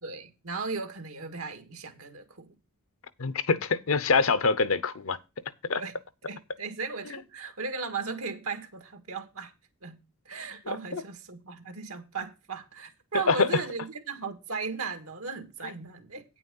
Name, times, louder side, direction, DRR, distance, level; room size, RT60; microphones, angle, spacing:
voice 1, 0.0-2.5 5.8-5.9 6.2-9.5 9.8-16.2, right 4 dB, 90° right, 1.8 m, -37 dB
voice 2, 3.2-5.2 5.7-5.8 10.7-11.0 13.1-13.5, left 4 dB, 70° left, 0.7 m, -25 dB
9.3 x 6.1 x 5.5 m
head